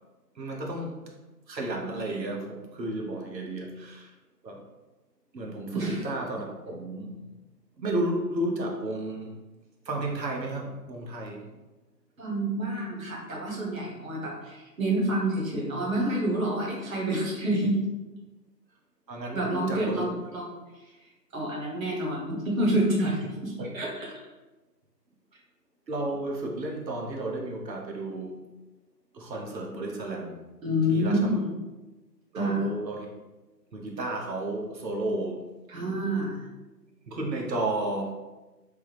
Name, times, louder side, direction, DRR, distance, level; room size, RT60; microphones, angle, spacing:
voice 1, 0.4-1.0 1.5-4.1 4.4-4.6 5.3-7.1 7.8-9.4 9.8-11.5 19.1-20.0 23.6-23.7 24.0-24.1 25.9-28.4 29.1-30.4 30.9-31.4 32.3-33.1 33.7-35.4 37.1-38.1, right 2 dB, 80° right, 0 dB, 0.9 m, -32 dB
voice 2, 5.7-6.0 12.2-17.8 19.3-20.5 21.3-23.9 30.6-31.6 32.3-32.7 35.7-36.4, right 1 dB, 55° right, -2 dB, 1.0 m, -28 dB
3.4 x 2.1 x 3.2 m, 1.1 s
figure-of-eight pair, 155°, 50 cm